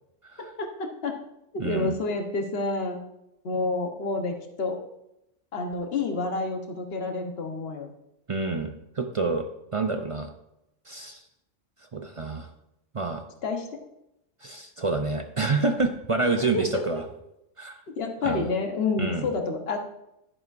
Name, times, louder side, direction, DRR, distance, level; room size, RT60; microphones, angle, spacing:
voice 1, 0.4-1.2 1.5-3.0 3.4-4.8 5.5-7.9 13.4-13.8 16.5-16.8 18.0-19.8, left 3 dB, 55° left, 4 dB, 1.3 m, -29 dB
voice 2, 1.6-2.0 8.3-9.4 9.7-10.3 10.9-11.2 11.9-12.5 12.9-13.2 14.4-17.0 17.6-17.8 18.2-18.5 19.0-19.3, right 3 dB, 45° right, 5 dB, 0.4 m, -28 dB
11.0 x 11.0 x 2.6 m, 0.86 s
omnidirectional pair, 1.3 m